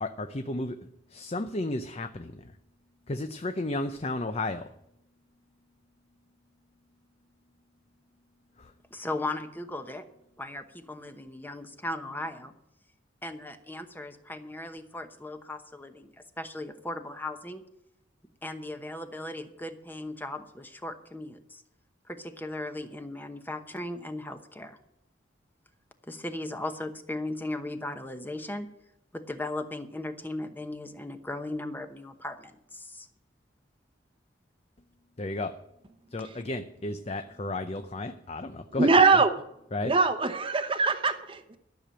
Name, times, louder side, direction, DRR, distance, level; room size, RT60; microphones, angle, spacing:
voice 1, 0.0-2.5 3.1-4.7 8.6-8.7 35.2-35.5 36.1-38.9 39.7-39.9, left 2 dB, 35° left, 8 dB, 0.6 m, -33 dB
voice 2, 8.9-10.1 10.4-12.5 13.2-17.6 18.4-21.6 22.1-24.8 26.1-28.7 29.1-33.1, left 2 dB, 10° left, 8 dB, 0.9 m, -37 dB
voice 3, 38.8-39.3 39.8-41.6, right 4 dB, 25° right, 8 dB, 0.9 m, -22 dB
13.0 x 6.8 x 8.9 m, 0.80 s
head